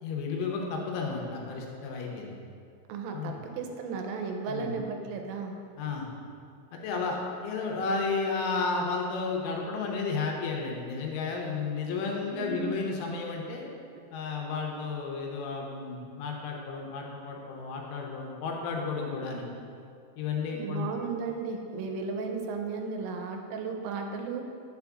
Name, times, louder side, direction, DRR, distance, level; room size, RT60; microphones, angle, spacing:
voice 1, 0.0-2.3 3.1-3.4 4.5-4.8 5.8-6.1 6.7-13.7 14.1-19.5 20.2-20.9, left 4 dB, 90° left, 0 dB, 3.3 m, -32 dB
voice 2, 2.9-5.6 12.3-12.8 20.5-24.4, right 4 dB, 90° right, 3 dB, 3.2 m, -34 dB
7.9 x 7.2 x 2.4 m, 2.4 s
omnidirectional pair, 5.6 m